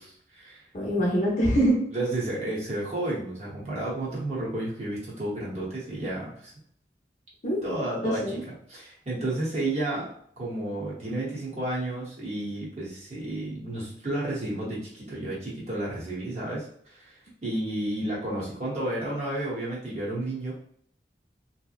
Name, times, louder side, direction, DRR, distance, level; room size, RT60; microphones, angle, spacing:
voice 1, 0.0-0.6 1.9-6.5 7.6-10.1 10.4-20.5, right 1 dB, 40° right, -6 dB, 0.9 m, -32 dB
voice 2, 0.7-1.9 7.4-7.6 8.0-8.4, equal, 45° left, -2 dB, 0.6 m, -24 dB
2.7 x 2.0 x 2.4 m, 0.63 s
head